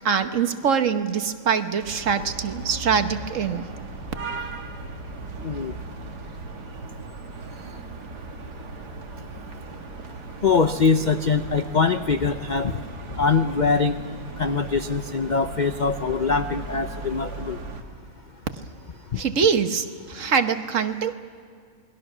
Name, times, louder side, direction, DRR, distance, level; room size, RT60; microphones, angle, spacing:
voice 1, 0.0-3.6 19.2-21.1, right 6 dB, 55° right, 8 dB, 1.4 m, -23 dB
sound 1, 1.8-17.8, right 3 dB, 85° right, 2.2 m, -37 dB
voice 2, 5.4-5.7 10.4-12.7 13.2-14.0 14.4-17.6, left 4 dB, 50° left, 8 dB, 0.5 m, -23 dB
28.5 x 21.0 x 6.1 m, 2.2 s
omnidirectional pair, 1.7 m